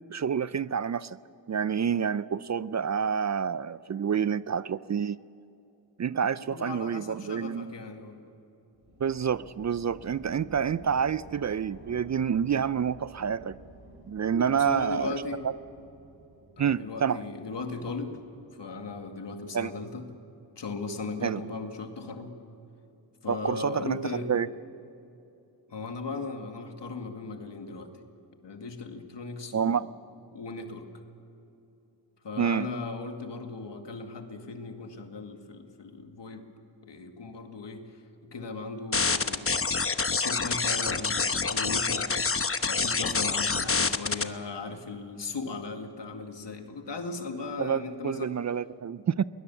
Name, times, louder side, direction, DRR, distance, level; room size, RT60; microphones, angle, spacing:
voice 1, 0.1-1.2 1.5-5.2 6.0-7.7 9.0-13.6 14.1-15.2 16.6-17.2 19.5-19.7 21.2-21.4 23.3-24.5 29.5-29.9 32.4-32.7 47.6-49.2, right 7 dB, 40° right, 17 dB, 0.4 m, -28 dB
voice 2, 6.3-8.2 14.5-15.4 16.6-18.2 18.6-20.1 20.6-22.3 23.2-24.3 25.7-27.9 28.4-29.9 30.3-30.9 32.2-36.4 36.8-37.9 38.3-39.5 40.2-42.1 42.7-48.4, left 3 dB, 70° left, 5 dB, 2.2 m, -37 dB
sound 1, 8.7-18.7, right 2 dB, 60° right, 4.1 m, -52 dB
sound 2, 38.9-44.2, left 4 dB, 30° left, 1.0 m, -27 dB
22.0 x 19.0 x 7.2 m, 2.8 s
cardioid pair, 70°, 44 cm